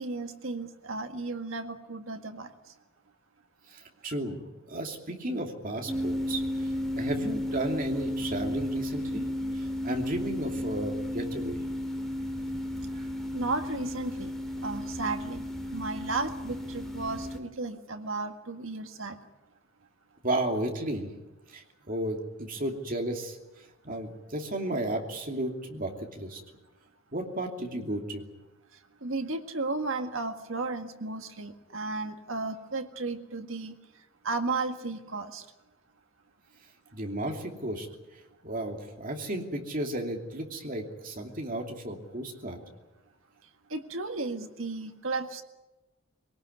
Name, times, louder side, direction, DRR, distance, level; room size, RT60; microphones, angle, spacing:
voice 1, 0.0-2.5 13.3-14.3 14.6-15.4 15.7-19.2 23.9-24.0 29.0-33.7 34.2-35.4 43.7-45.4, right 3 dB, 70° right, 6 dB, 1.9 m, -34 dB
voice 2, 3.7-4.4 4.7-9.3 9.5-11.6 20.2-21.1 21.5-23.4 23.8-26.4 27.1-28.3 36.9-37.9 38.4-42.6, right 1 dB, 40° right, 3 dB, 2.8 m, -33 dB
sound 1, 5.9-17.4, left 1 dB, ahead, 2.3 m, -33 dB
22.5 x 18.5 x 9.6 m, 1.1 s
head